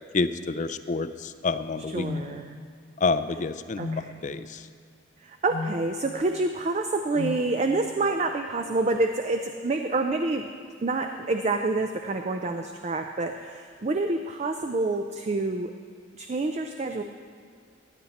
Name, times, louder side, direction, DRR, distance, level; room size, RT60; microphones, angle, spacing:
voice 1, 0.1-2.4 3.0-4.7, left 4 dB, 40° left, 11 dB, 0.4 m, -29 dB
voice 2, 1.9-2.6 3.8-4.1 5.2-10.5 10.8-15.7 16.2-17.0, right 2 dB, 35° right, 5 dB, 0.4 m, -27 dB
sound 1, 2.0-2.3 3.8-4.1 5.5-5.8 7.1-7.4, left 3 dB, 90° left, 0.9 m, -33 dB
15.5 x 10.0 x 4.2 m, 2.1 s
head